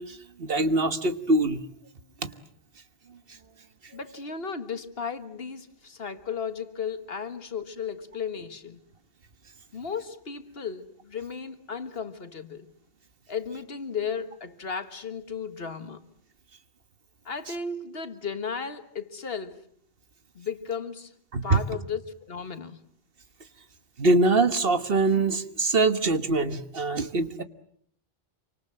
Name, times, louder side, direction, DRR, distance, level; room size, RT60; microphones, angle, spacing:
voice 1, 0.0-1.6 2.2-2.3 21.3-21.6 24.0-27.4, right 2 dB, 65° right, 1.6 m, -23 dB
voice 2, 3.9-8.8 9.7-12.7 13.3-16.0 17.3-19.7 20.4-21.2 21.4-22.8, left 6 dB, 70° left, 1.7 m, -35 dB
28.0 x 25.0 x 7.5 m
omnidirectional pair, 1.0 m